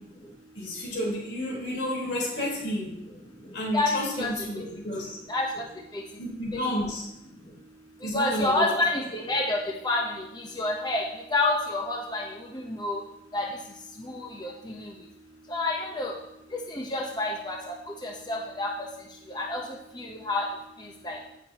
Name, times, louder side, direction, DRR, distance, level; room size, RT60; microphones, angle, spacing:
voice 1, 0.5-3.0 3.5-5.2 6.2-7.1 8.0-8.8, left 1 dB, 90° left, -4 dB, 4.3 m, -31 dB
voice 2, 5.3-5.6 5.9-6.0 8.1-11.0 11.3-12.3 12.5-13.0 13.3-13.5 14.0-14.9 15.5-16.1 16.7-17.6 18.0-18.7 19.3-19.6 19.9-20.4 21.0-21.2, left 2 dB, 25° left, -1 dB, 1.0 m, -28 dB
16.0 x 6.6 x 3.0 m, 0.83 s
head